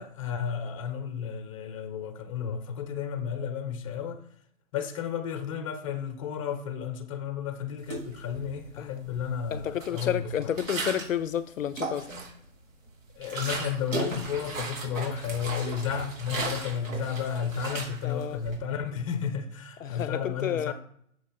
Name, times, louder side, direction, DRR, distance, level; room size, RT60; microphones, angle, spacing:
voice 1, 0.0-4.2 4.7-10.3 13.1-20.7, left 7 dB, 25° left, 0.8 m, -32 dB
sound 1, 7.8-8.7 9.0-11.2 11.6-12.5 12.9-18.6, right 3 dB, 70° right, 3.0 m, -36 dB
voice 2, 9.5-12.1 18.0-18.4 19.8-20.7, left 9 dB, 70° left, 0.6 m, -30 dB
6.7 x 6.4 x 4.3 m
hypercardioid pair, 150°, 41 cm